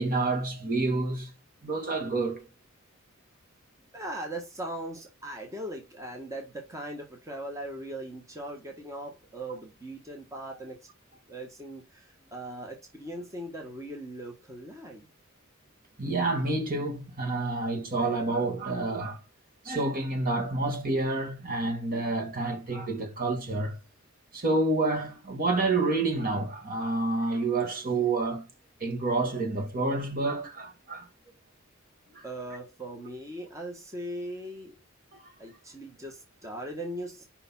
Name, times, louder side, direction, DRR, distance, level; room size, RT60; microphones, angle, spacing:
voice 1, 0.0-1.3 1.6-2.5 16.0-19.2 19.6-23.8 24.3-28.5 28.8-31.1 32.1-32.2 35.2-35.3, right 2 dB, 45° right, 2.3 m, -28 dB
voice 2, 3.9-10.8 11.3-15.1 32.2-34.8 35.4-37.2, right 1 dB, 15° right, 1.5 m, -39 dB
6.9 x 5.7 x 5.5 m
head